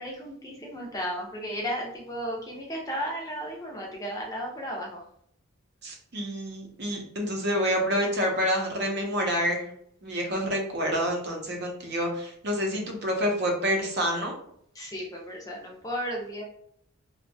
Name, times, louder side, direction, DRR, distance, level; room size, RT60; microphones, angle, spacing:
voice 1, 0.0-5.0 14.7-16.4, equal, 15° left, -1 dB, 0.5 m, -34 dB
voice 2, 5.8-9.7 10.0-14.3, equal, 55° right, 1 dB, 0.6 m, -28 dB
2.6 x 2.1 x 2.6 m, 0.69 s
head